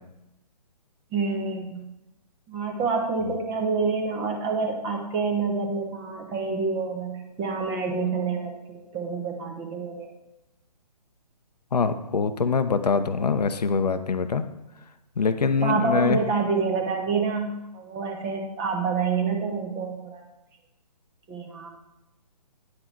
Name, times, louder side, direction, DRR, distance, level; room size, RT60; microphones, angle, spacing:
voice 1, 1.1-1.9 2.5-10.1 15.6-20.2 21.3-21.7, right 4 dB, 15° right, 1 dB, 0.8 m, -27 dB
voice 2, 11.7-14.4 15.2-16.2, left 5 dB, 70° left, 10 dB, 0.6 m, -24 dB
9.7 x 3.8 x 4.5 m, 0.93 s
figure-of-eight pair, 140°, 21 cm